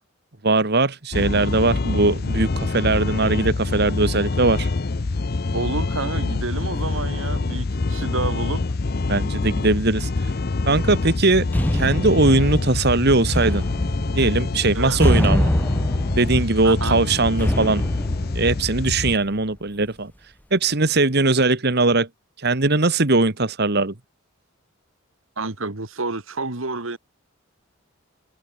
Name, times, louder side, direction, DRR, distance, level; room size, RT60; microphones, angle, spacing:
voice 1, 0.4-4.7 9.1-10.1 10.7-11.5 11.7-13.6 14.1-15.5 16.2-17.8 18.4-20.1 20.5-22.1 22.4-23.9, right 3 dB, 50° right, 1.7 m, -20 dB
sound 1, 1.1-19.2, left 3 dB, 50° left, 0.6 m, -26 dB
voice 2, 5.5-8.6 14.7-15.0 16.6-17.0 25.4-27.0, right 3 dB, 75° right, 2.2 m, -29 dB
sound 2, 10.7-19.3, equal, 10° left, 2.9 m, -26 dB
head